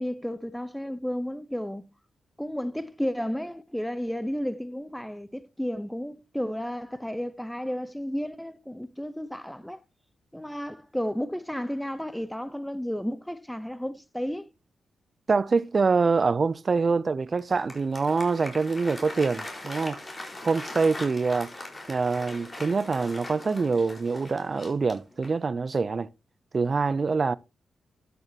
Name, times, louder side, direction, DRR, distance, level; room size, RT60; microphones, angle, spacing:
voice 1, 0.0-1.8 2.4-9.8 10.3-14.5, equal, 5° left, 0.9 m, -32 dB
voice 2, 15.3-20.0 20.4-21.5 21.9-26.1 26.5-27.4, right 4 dB, 45° right, 0.6 m, -25 dB
Applause, 17.4-25.5, left 1 dB, 30° left, 4.8 m, -41 dB
12.0 x 9.3 x 2.9 m
cardioid pair, 55°, 0 cm